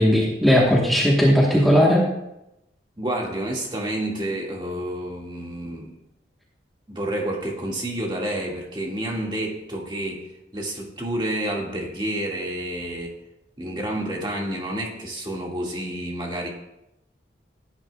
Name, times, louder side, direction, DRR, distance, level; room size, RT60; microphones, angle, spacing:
voice 1, 0.0-2.0, equal, ahead, -4 dB, 1.3 m, -17 dB
voice 2, 3.0-6.0 6.9-10.3 10.5-13.1 13.6-16.5, right 1 dB, 25° right, -1 dB, 2.0 m, -29 dB
16.0 x 10.0 x 2.3 m, 0.87 s
head